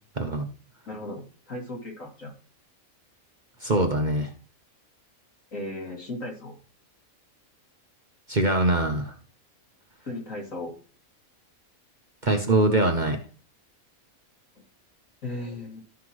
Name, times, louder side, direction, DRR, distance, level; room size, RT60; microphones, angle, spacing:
voice 1, 0.2-0.5 3.6-4.3 8.3-9.1 12.2-13.2, right 2 dB, 40° right, 4 dB, 0.9 m, -23 dB
voice 2, 0.9-2.3 5.5-6.6 10.1-10.7 15.2-15.8, left 2 dB, 65° left, 0 dB, 2.7 m, -36 dB
12.5 x 5.7 x 3.1 m, 0.39 s
omnidirectional pair, 1.5 m